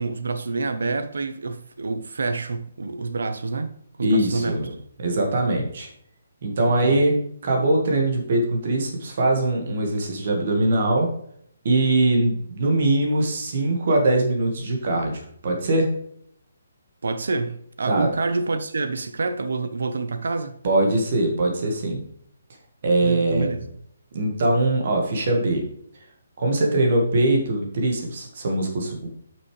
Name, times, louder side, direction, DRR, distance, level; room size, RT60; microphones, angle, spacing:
voice 1, 0.0-4.6 6.7-7.0 17.0-20.6 23.0-23.7, right 3 dB, 70° right, 0.8 m, -27 dB
voice 2, 4.0-4.7 5.0-5.9 6.4-7.2 7.4-11.1 11.6-15.9 17.9-18.1 20.6-22.0 22.8-23.5 24.1-25.6 26.4-29.1, right 2 dB, 35° right, 1.4 m, -22 dB
8.0 x 6.1 x 3.2 m
hypercardioid pair, 180°, 0 cm